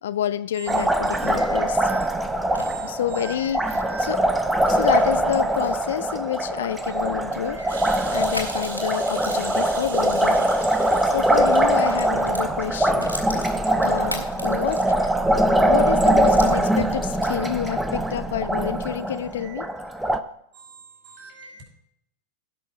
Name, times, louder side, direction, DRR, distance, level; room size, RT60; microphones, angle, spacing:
voice 1, 0.0-1.9 2.8-4.2 4.7-7.8 8.1-10.4 10.7-13.5 13.8-15.1 15.7-19.7, left 10 dB, 60° left, 13 dB, 0.5 m, -28 dB
voice 2, 0.6-2.3 2.6-4.2 6.8-7.9 19.4-19.6 20.5-21.6, right 4 dB, 35° right, 0 dB, 5.2 m, -42 dB
Liquid, 0.7-20.2, right 1 dB, 5° right, 0.7 m, -22 dB
sound 1, 2.0-11.0 11.3-15.2 15.6-15.7 16.2-17.6, left 1 dB, 90° right, 2.0 m, -40 dB
sound 2, 7.7-12.2 12.6-12.7, right 4 dB, 55° right, 3.0 m, -40 dB
16.5 x 6.2 x 4.5 m, 0.76 s
figure-of-eight pair, 90°, 0 cm